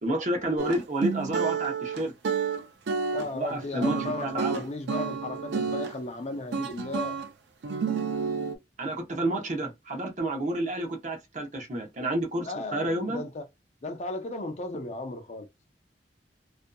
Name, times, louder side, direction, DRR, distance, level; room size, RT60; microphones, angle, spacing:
voice 1, 0.0-2.1 3.3-4.7 8.8-13.2, right 1 dB, 45° right, 0.8 m, -30 dB
sound 1, 0.6-6.0 6.5-7.3 7.6-8.6, right 5 dB, 75° right, 0.4 m, -30 dB
voice 2, 3.1-7.2 12.4-13.4 13.8-15.5, left 2 dB, 40° left, 0.4 m, -35 dB
2.6 x 2.4 x 2.2 m
head